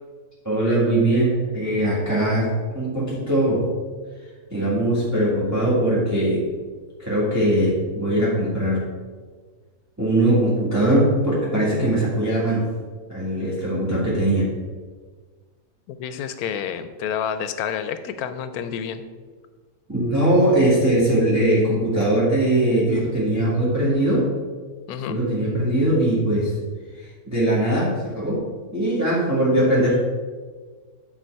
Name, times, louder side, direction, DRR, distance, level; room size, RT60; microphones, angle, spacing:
voice 1, 0.4-2.5 2.7-3.7 4.5-6.5 7.0-8.8 10.0-12.7 13.1-14.5 19.9-24.3 25.1-26.5 27.3-28.4 28.7-30.0, right 1 dB, 10° right, -7 dB, 1.7 m, -20 dB
voice 2, 15.9-19.0 24.9-25.2, left 8 dB, 80° left, 11 dB, 1.1 m, -29 dB
9.0 x 4.0 x 4.5 m, 1.5 s
omnidirectional pair, 1.6 m